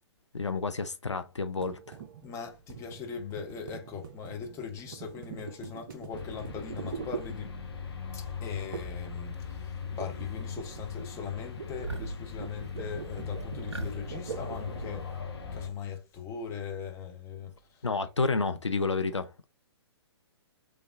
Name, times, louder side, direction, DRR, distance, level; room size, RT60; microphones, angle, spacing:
voice 1, 0.3-2.0 17.8-19.5, left 4 dB, 85° left, 0.5 m, -30 dB
sound 1, 1.6-7.9 8.7-9.1 9.4-15.1, right 7 dB, 45° right, 0.6 m, -44 dB
voice 2, 2.2-7.5 8.1-15.1 15.5-17.8, left 6 dB, 20° left, 0.9 m, -40 dB
sound 2, 6.1-15.7, left 6 dB, 60° left, 1.0 m, -40 dB
sound 3, 9.1-9.7 10.1-10.8 11.1-11.3 11.7-15.2, right 2 dB, 75° right, 0.8 m, -43 dB
3.3 x 3.1 x 3.6 m
figure-of-eight pair, 120°, 15 cm